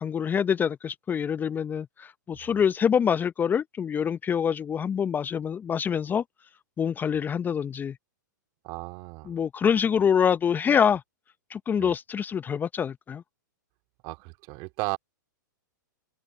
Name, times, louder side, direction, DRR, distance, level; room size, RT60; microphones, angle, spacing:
voice 1, 0.0-6.2 6.8-8.0 9.3-11.0 11.5-13.2, left 7 dB, 20° left, 0.8 m, -25 dB
voice 2, 8.6-9.3 11.8-12.0 14.0-15.0, right 30 dB, 40° right, 2.6 m, -35 dB
figure-of-eight pair, 105°, 10 cm